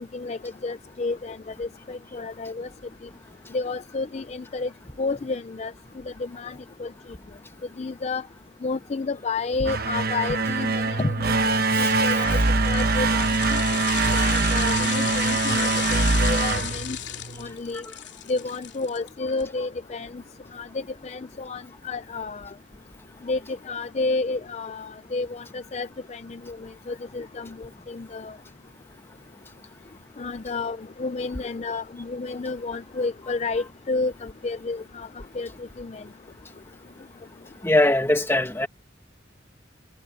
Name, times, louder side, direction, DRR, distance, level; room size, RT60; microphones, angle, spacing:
voice 1, 0.0-2.7 3.5-4.7 5.0-5.7 6.2-6.5 6.8-6.9 7.8-8.2 8.6-12.4 12.7-13.6 14.2-17.0 17.4-17.8 18.3-20.1 20.5-22.5 23.2-23.4 23.7-26.6 26.9-28.3 30.2-35.1 35.4-35.5 35.8-36.0, left 3 dB, 35° left, 0.4 m, -31 dB
sound 1, 9.5-17.5, right 3 dB, 50° right, 1.1 m, -23 dB
voice 2, 11.7-12.2 37.6-38.7, left 1 dB, 10° left, 1.3 m, -22 dB
sound 2, 12.1-19.4 19.8-19.9, left 11 dB, 60° left, 3.5 m, -34 dB
head